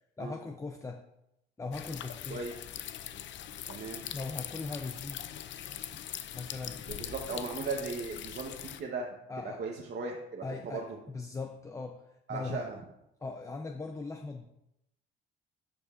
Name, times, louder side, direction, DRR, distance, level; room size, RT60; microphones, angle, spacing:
voice 1, 0.2-1.0 1.6-2.4 4.1-5.3 6.3-6.8 9.3-9.6 10.4-12.7 13.2-14.5, left 3 dB, 15° left, 5 dB, 0.5 m, -39 dB
sound 1, 1.7-8.8, left 10 dB, 70° left, 0.5 m, -42 dB
voice 2, 3.7-4.1 6.9-9.1 9.6-10.8 12.3-12.8, right 4 dB, 55° right, 0 dB, 1.0 m, -37 dB
12.0 x 5.2 x 2.5 m, 0.84 s
cardioid pair, 90°, 20 cm